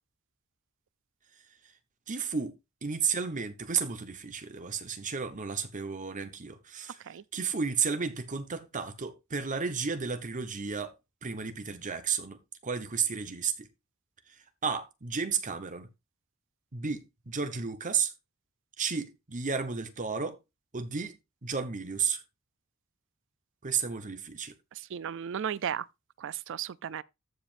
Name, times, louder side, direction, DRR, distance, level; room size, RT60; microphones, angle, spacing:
voice 1, 2.1-2.5 2.8-7.0 7.3-10.9 11.2-13.7 14.6-15.9 16.7-18.1 18.8-20.4 20.7-21.1 21.4-22.2 23.6-24.5, right 6 dB, 40° right, 1.1 m, -32 dB
voice 2, 24.9-25.9 26.2-27.0, right 8 dB, 60° right, 0.4 m, -34 dB
14.5 x 5.1 x 2.5 m
head